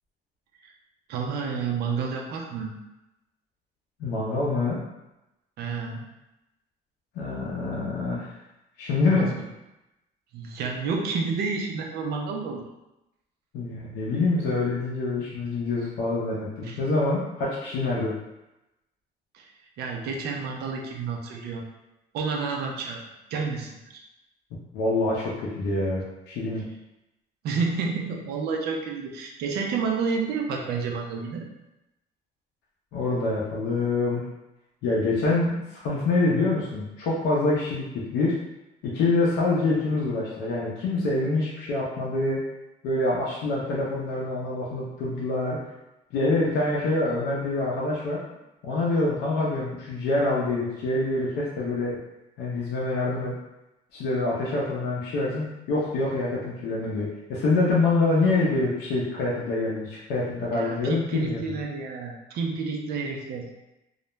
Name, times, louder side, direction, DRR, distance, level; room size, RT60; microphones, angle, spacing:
voice 1, 1.1-2.8 5.6-6.1 9.0-9.4 10.3-12.7 16.6-16.8 19.3-19.5 19.8-21.6 22.1-23.0 23.3-24.0 27.4-31.4 60.5-63.5, right 5 dB, 70° right, 1 dB, 0.5 m, -30 dB
voice 2, 4.0-4.8 7.1-8.3 8.8-9.3 13.5-18.1 24.7-26.7 32.9-34.2 34.8-38.3 38.8-42.4 42.8-45.6 46.1-48.2 48.6-52.0 52.4-53.3 53.9-61.4, left 2 dB, 85° left, -6 dB, 0.6 m, -26 dB
2.3 x 2.1 x 3.0 m, 0.95 s
cardioid pair, 110°, 17 cm